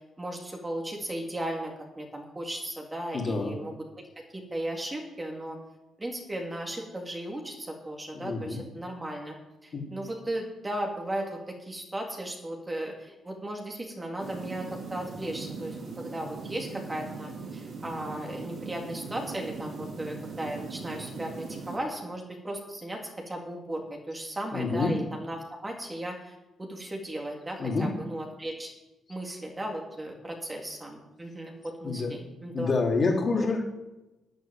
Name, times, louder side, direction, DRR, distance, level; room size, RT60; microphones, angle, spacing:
voice 1, 0.2-3.7 4.3-5.6 6.0-9.4 9.6-23.0 23.3-28.7 29.1-32.7 33.3-33.5, right 1 dB, 20° right, 0 dB, 3.7 m, -36 dB
voice 2, 3.1-3.5 8.2-8.6 9.7-9.9 24.5-24.9 27.6-27.9 31.8-32.1 32.5-33.6, left 3 dB, 45° left, -1 dB, 4.2 m, -27 dB
sound 1, 14.2-21.8, right 4 dB, 60° right, 4.7 m, -40 dB
11.5 x 9.3 x 9.5 m, 1.0 s
cardioid pair, 90°, 0 cm